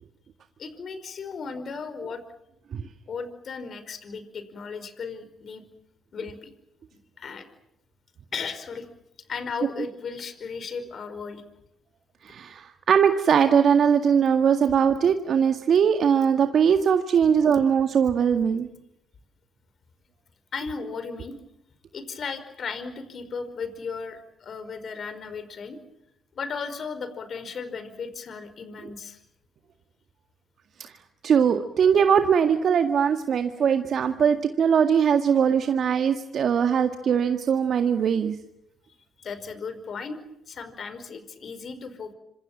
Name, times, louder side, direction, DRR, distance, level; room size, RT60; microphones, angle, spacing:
voice 1, 0.6-2.2 3.1-5.6 6.1-6.5 7.2-7.5 8.3-8.9 9.3-11.4 20.5-21.4 21.9-25.8 26.3-29.2 39.2-40.2 40.5-42.1, left 5 dB, 55° left, 11 dB, 5.0 m, -35 dB
voice 2, 12.2-18.7 30.8-30.9 31.2-38.4, right 7 dB, 60° right, 7 dB, 1.9 m, -21 dB
26.5 x 26.5 x 7.5 m, 0.79 s
supercardioid pair, 60°, 0 cm